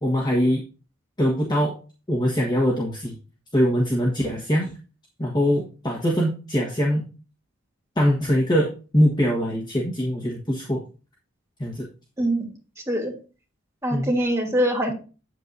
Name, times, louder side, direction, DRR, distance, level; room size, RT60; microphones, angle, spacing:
voice 1, 0.0-0.6 1.2-1.7 2.1-3.2 3.5-4.7 5.2-7.0 8.0-10.8 11.6-11.9 13.9-14.1, equal, 20° left, -1 dB, 1.4 m, -22 dB
voice 2, 12.2-12.5 12.9-13.1 13.8-14.9, right 1 dB, 15° right, -2 dB, 2.8 m, -23 dB
8.4 x 8.0 x 2.6 m, 0.34 s
head